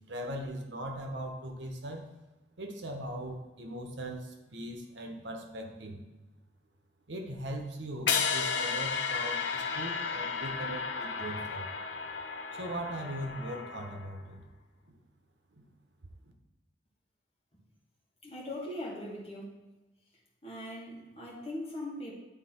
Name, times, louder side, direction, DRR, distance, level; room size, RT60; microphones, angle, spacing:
voice 1, 0.1-2.0 2.6-6.0 7.1-11.7 12.5-14.4 14.9-15.0 15.5-15.6, right 1 dB, 80° right, 3 dB, 1.1 m, -40 dB
sound 1, 8.1-14.2, left 5 dB, 80° left, 0.6 m, -33 dB
voice 2, 18.2-19.7 20.4-22.2, left 1 dB, 35° left, -4 dB, 1.8 m, -40 dB
9.9 x 3.6 x 4.4 m, 1.1 s
head